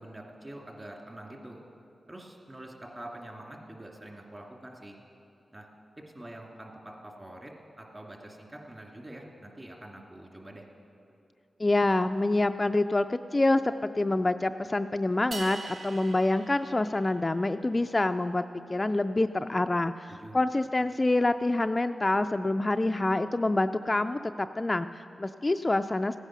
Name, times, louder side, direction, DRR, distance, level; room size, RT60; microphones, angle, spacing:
voice 1, 0.0-1.6 2.1-5.0 5.5-5.7 6.0-10.7 20.1-20.4, right 1 dB, 25° right, 0 dB, 2.3 m, -45 dB
voice 2, 11.6-18.4 18.7-26.2, left 2 dB, 25° left, 8 dB, 0.3 m, -26 dB
sound 1, 15.3-17.6, right 4 dB, 65° right, 0.6 m, -42 dB
15.5 x 9.8 x 6.1 m, 2.8 s
cardioid pair, 70°, 0 cm